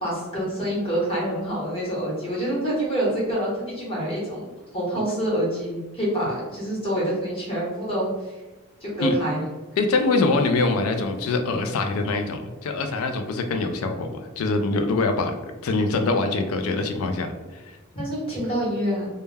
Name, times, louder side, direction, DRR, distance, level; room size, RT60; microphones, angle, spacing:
voice 1, 0.0-4.4 4.7-8.1 8.8-9.4 10.1-10.3 17.9-19.1, right 1 dB, 25° left, -7 dB, 1.0 m, -26 dB
voice 2, 9.8-15.3 15.6-17.3, left 3 dB, 75° left, 7 dB, 0.3 m, -24 dB
2.2 x 2.1 x 3.2 m, 1.2 s
head